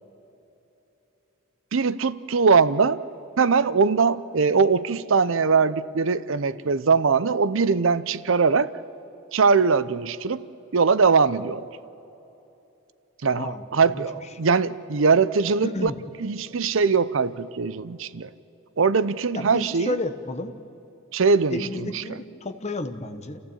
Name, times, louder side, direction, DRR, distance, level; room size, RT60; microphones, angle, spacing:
voice 1, 1.7-3.0 3.4-8.7 9.3-10.4 10.7-11.7 13.2-15.9 16.2-18.3 18.8-20.0 21.1-22.2, right 5 dB, 65° right, 17 dB, 0.6 m, -21 dB
voice 2, 13.4-14.0 15.6-16.0 19.3-20.5 21.5-23.4, left 2 dB, 30° left, 8 dB, 1.1 m, -32 dB
29.0 x 15.5 x 8.8 m, 2.9 s
head